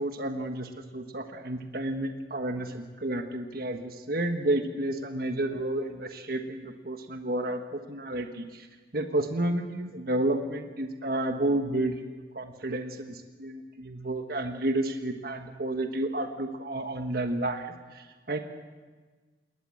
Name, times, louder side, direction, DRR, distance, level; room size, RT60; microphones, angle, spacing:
voice 1, 0.0-8.7 8.9-18.4, right 1 dB, 55° right, 6 dB, 1.4 m, -31 dB
20.5 x 19.5 x 7.8 m, 1.4 s
head